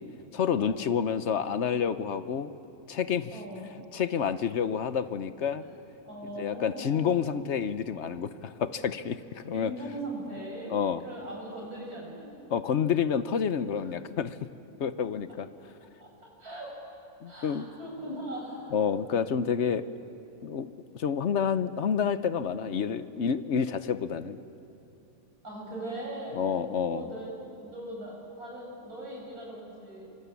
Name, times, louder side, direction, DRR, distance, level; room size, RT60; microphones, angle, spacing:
voice 1, 0.3-2.5 2.9-3.4 3.9-5.6 6.4-9.7 10.7-11.0 12.5-14.4 14.8-15.5 17.2-17.7 18.7-19.9 20.4-24.4 26.3-27.1, left 7 dB, 55° left, 12 dB, 1.1 m, -29 dB
voice 2, 3.3-3.7 6.1-7.2 9.5-10.8 11.0-12.3 13.8-14.0 16.0-16.1 16.4-16.8 17.3-18.8 25.4-26.4 26.9-30.1, right 1 dB, 85° right, -2 dB, 7.4 m, -40 dB
25.5 x 25.0 x 8.4 m, 2.7 s
omnidirectional pair, 1.5 m